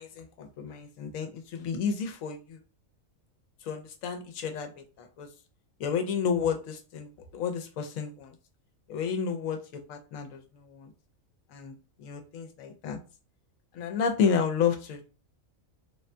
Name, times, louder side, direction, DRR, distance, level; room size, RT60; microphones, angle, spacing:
voice 1, 0.0-2.6 3.6-5.3 5.8-8.3 8.9-10.9 11.5-13.0 13.7-15.0, left 6 dB, 85° left, 5 dB, 1.0 m, -31 dB
3.5 x 2.2 x 2.6 m, 0.33 s
omnidirectional pair, 1.4 m